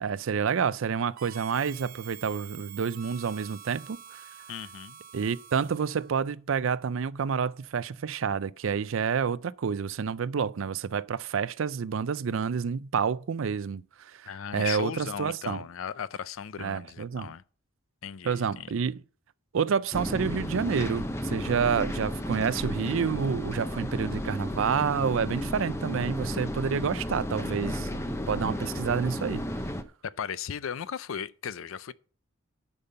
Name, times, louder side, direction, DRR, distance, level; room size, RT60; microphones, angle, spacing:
voice 1, 0.0-4.2 5.1-15.6 16.6-17.3 18.2-19.0 19.5-29.5, right 6 dB, 70° right, 0.4 m, -29 dB
Harmonica, 1.2-6.2, right 10 dB, 45° right, 0.8 m, -47 dB
voice 2, 4.5-5.0 14.3-17.4 18.0-18.7 30.0-31.9, left 7 dB, 75° left, 0.4 m, -36 dB
sound 1, 19.9-29.8, equal, 15° left, 0.6 m, -33 dB
10.5 x 5.5 x 5.5 m
head